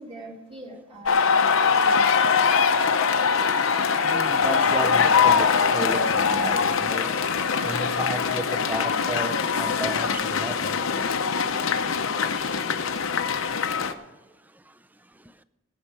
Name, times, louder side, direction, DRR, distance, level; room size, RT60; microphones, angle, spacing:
voice 1, 0.0-2.5, right 1 dB, 30° right, 2.2 m, -45 dB
sound 1, 1.1-13.9, left 6 dB, 85° left, 0.8 m, -22 dB
voice 2, 4.0-7.1 7.6-10.8, right 1 dB, 10° right, 0.4 m, -33 dB
17.5 x 6.6 x 6.0 m
head